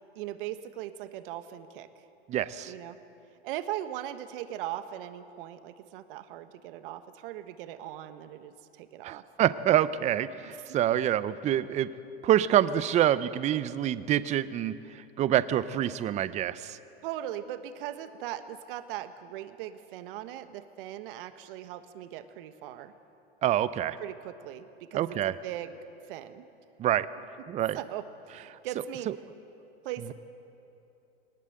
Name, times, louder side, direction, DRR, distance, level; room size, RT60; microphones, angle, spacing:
voice 1, 0.1-1.9 2.6-3.0 3.4-9.2 10.5-10.8 17.0-22.9 24.0-25.8 26.1-26.4 27.7-29.1 29.8-30.1, right 12 dB, 55° right, 10 dB, 1.3 m, -39 dB
voice 2, 2.3-2.7 9.0-11.9 12.2-14.8 15.2-16.8 23.4-24.0 24.9-25.3 26.8-27.1 27.5-27.8, right 11 dB, 20° right, 15 dB, 0.6 m, -26 dB
20.5 x 19.0 x 7.9 m, 2.9 s
hypercardioid pair, 120°, 32 cm